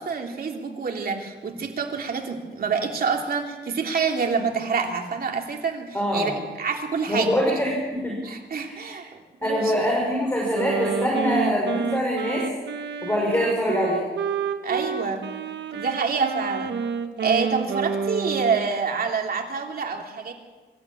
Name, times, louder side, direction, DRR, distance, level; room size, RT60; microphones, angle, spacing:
voice 1, 0.0-7.3 8.2-9.7 13.4-13.7 14.6-15.3 15.7-16.8 17.2-20.3, right 5 dB, 55° right, 2 dB, 3.1 m, -27 dB
voice 2, 5.9-6.4 7.1-8.2 8.6-8.8 9.4-12.5 13.0-14.0, equal, 10° left, -2 dB, 5.7 m, -24 dB
Wind instrument woodwind instrument, 10.5-18.7, right 6 dB, 85° right, 1.4 m, -29 dB
25.0 x 13.5 x 8.6 m, 1.3 s
wide cardioid pair, 125°, 18 cm